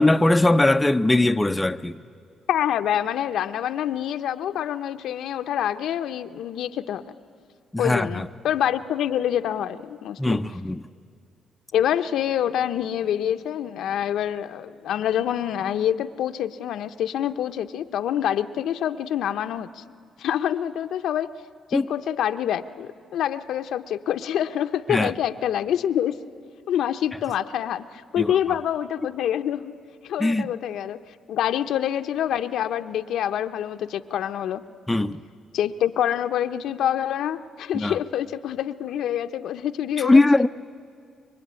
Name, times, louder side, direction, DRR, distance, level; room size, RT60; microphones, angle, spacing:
voice 1, 0.0-2.0 7.7-8.3 10.2-10.8 21.7-21.8 24.9-25.1 28.2-28.3 30.2-30.5 34.9-35.2 37.7-38.0 40.0-40.5, left 2 dB, 10° left, 0.6 m, -20 dB
voice 2, 2.5-7.0 7.8-10.4 11.7-19.8 20.2-21.3 21.7-26.1 26.7-29.7 30.0-31.0 31.3-34.6 35.5-40.2, left 10 dB, 75° left, 0.8 m, -26 dB
26.5 x 23.5 x 9.6 m
cardioid pair, 90°, 0 cm